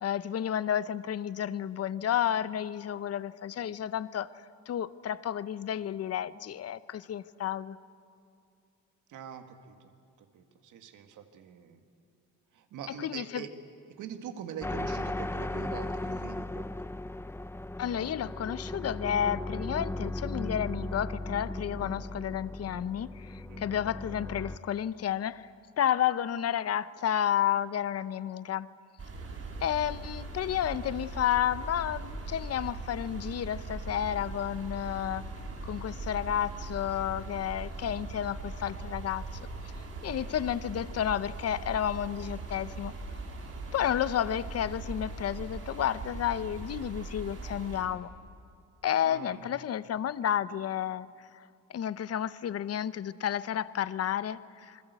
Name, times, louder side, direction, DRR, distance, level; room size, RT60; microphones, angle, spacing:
voice 1, 0.0-4.3 4.7-7.8 13.0-13.5 17.8-25.5 25.8-28.7 29.6-35.2 35.6-39.2 40.0-42.9 43.7-48.1 48.8-51.1 51.7-54.8, left 10 dB, 55° left, 16 dB, 0.8 m, -31 dB
voice 2, 9.1-9.7 10.3-11.8 12.5-13.5 14.0-16.7 22.9-23.1 23.4-23.7 40.1-40.4 43.7-43.8 49.0-49.5, right 8 dB, 80° right, 7 dB, 2.0 m, -44 dB
sound 1, 14.6-24.6, left 2 dB, 10° left, 0.7 m, -36 dB
sound 2, 29.0-47.8, right 3 dB, 50° right, 7.2 m, -40 dB
27.5 x 21.0 x 8.2 m, 2.4 s
cardioid pair, 90°, 30 cm